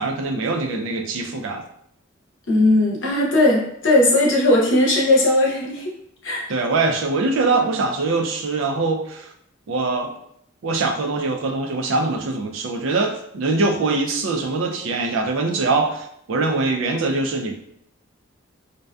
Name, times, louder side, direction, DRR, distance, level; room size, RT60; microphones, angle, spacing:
voice 1, 0.0-1.6 6.5-9.3 9.7-10.2 10.6-17.5, right 3 dB, 75° right, 3 dB, 0.4 m, -23 dB
voice 2, 2.5-5.9 6.2-6.5, left 1 dB, 60° left, -2 dB, 0.6 m, -18 dB
2.6 x 2.2 x 2.2 m, 0.71 s
head